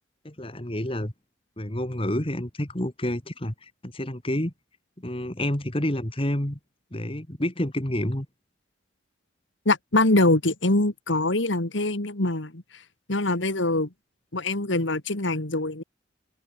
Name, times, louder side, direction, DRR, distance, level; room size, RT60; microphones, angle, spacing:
voice 1, 0.2-1.1 1.6-4.5 5.0-6.6 6.9-8.3, left 1 dB, 30° left, 2.2 m, -29 dB
voice 2, 9.7-12.6 13.1-13.9 14.3-15.8, left 2 dB, 75° left, 2.2 m, -23 dB
open air
head